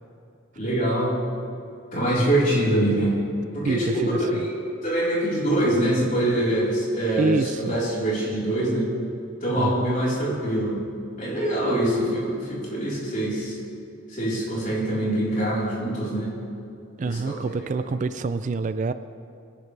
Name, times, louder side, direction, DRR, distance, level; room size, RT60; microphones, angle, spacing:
voice 1, 0.6-1.1 1.9-3.1 3.5-4.5 4.8-8.9 9.4-10.7 11.2-13.6 14.1-16.3 17.1-17.7, right 1 dB, 40° left, -6 dB, 4.1 m, -24 dB
voice 2, 7.2-7.8 9.6-9.9 17.0-18.9, right 3 dB, 35° right, 12 dB, 0.3 m, -26 dB
22.5 x 11.0 x 3.4 m, 2.5 s
head